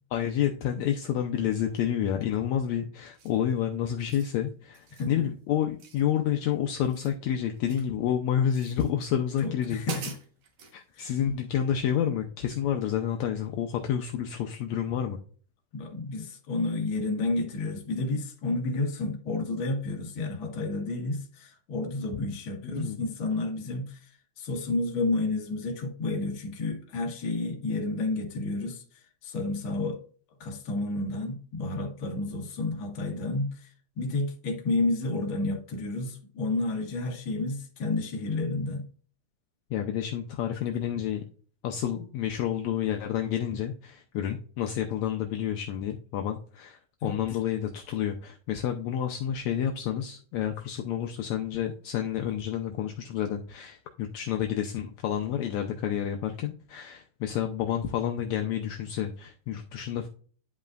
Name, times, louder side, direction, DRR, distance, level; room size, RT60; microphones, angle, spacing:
voice 1, 0.1-9.8 10.7-15.2 22.6-23.0 39.7-41.2 41.6-60.1, left 9 dB, 75° left, 1.9 m, -29 dB
sound 1, 3.1-3.5 3.9-4.4 4.7-5.1 5.8-6.5 6.7-8.0 8.5-8.9 9.4-9.5 9.8-10.8, right 4 dB, 60° right, 2.3 m, -44 dB
voice 2, 9.4-10.2 11.0-11.2 15.7-24.0 24.4-28.8 29.2-30.0 30.4-33.7 34.0-38.9 47.0-47.2, left 2 dB, 45° left, 1.9 m, -30 dB
10.5 x 5.3 x 2.5 m
omnidirectional pair, 3.6 m